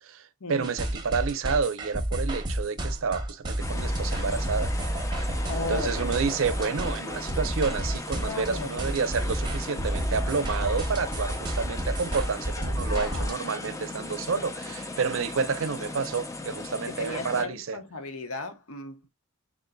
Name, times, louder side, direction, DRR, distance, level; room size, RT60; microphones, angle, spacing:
voice 1, 0.0-4.7 5.7-17.8, right 5 dB, 70° right, 0.5 m, -29 dB
sound 1, 0.6-13.3, right 1 dB, 20° right, 0.8 m, -30 dB
sound 2, 3.6-17.5, left 2 dB, 15° left, 0.5 m, -37 dB
voice 2, 5.5-5.9 8.2-8.8 12.8-13.3 16.9-19.1, left 3 dB, 85° left, 0.9 m, -36 dB
3.8 x 3.6 x 2.2 m
head